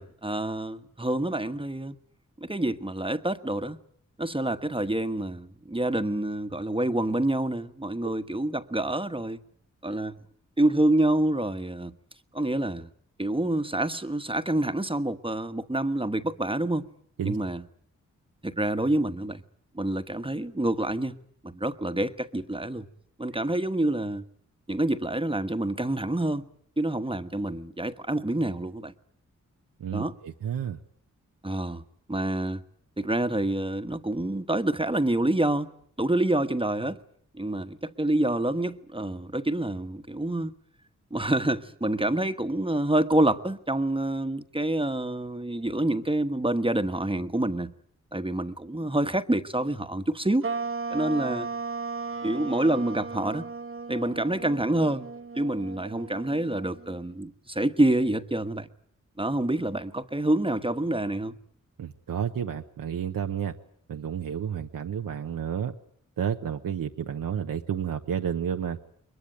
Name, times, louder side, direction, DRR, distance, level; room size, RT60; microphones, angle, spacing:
voice 1, 0.0-2.0 2.4-3.8 4.2-9.4 9.8-10.2 10.6-11.9 12.3-12.9 13.2-16.9 17.2-17.6 18.4-19.4 19.7-21.2 21.4-22.9 23.2-24.2 24.7-26.5 26.8-28.9 29.9-30.2 31.4-31.8 32.1-32.6 33.0-35.7 36.0-37.0 37.3-40.5 41.1-47.7 48.1-50.5 50.9-51.5 52.2-53.5 53.9-55.1 55.3-58.7 59.2-61.3, right 1 dB, 15° right, 1.3 m, -27 dB
voice 2, 29.8-30.8 61.8-63.5 63.9-65.7 66.2-68.8, right 8 dB, 90° right, 1.0 m, -31 dB
sound 1, 50.4-57.1, right 4 dB, 40° right, 1.1 m, -36 dB
22.0 x 21.5 x 8.9 m
cardioid pair, 50°, 32 cm